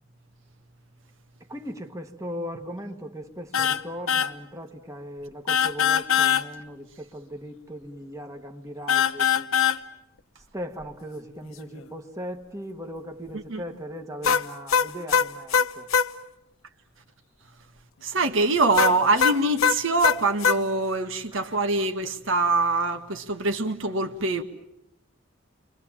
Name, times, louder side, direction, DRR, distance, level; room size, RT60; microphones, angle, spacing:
voice 1, 1.5-9.7 10.5-15.9 20.9-21.4, equal, 15° right, 1.5 m, -38 dB
sound 1, 3.5-3.8 4.1-4.3 5.5-6.4 8.9-9.8 14.2-16.1 18.8-20.6, left 7 dB, 85° left, 1.0 m, -21 dB
voice 2, 18.0-24.4, right 2 dB, 70° right, 1.7 m, -24 dB
30.0 x 24.0 x 7.4 m
head